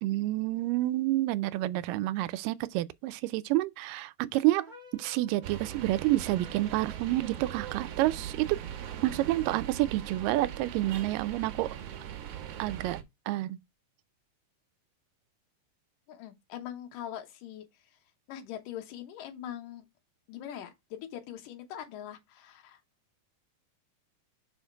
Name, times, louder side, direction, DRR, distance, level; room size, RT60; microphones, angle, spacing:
voice 1, 0.0-4.6 4.9-8.5 9.0-11.7 12.6-13.0 13.3-13.6, right 16 dB, 85° right, 2.2 m, -29 dB
sound 1, 4.5-6.7, left 1 dB, 35° right, 0.7 m, -53 dB
sound 2, 5.4-13.0, right 10 dB, 70° right, 1.6 m, -40 dB
voice 2, 16.1-17.6 18.3-19.8 20.3-22.8, left 10 dB, 80° left, 2.7 m, -42 dB
5.6 x 4.9 x 4.5 m
omnidirectional pair, 3.8 m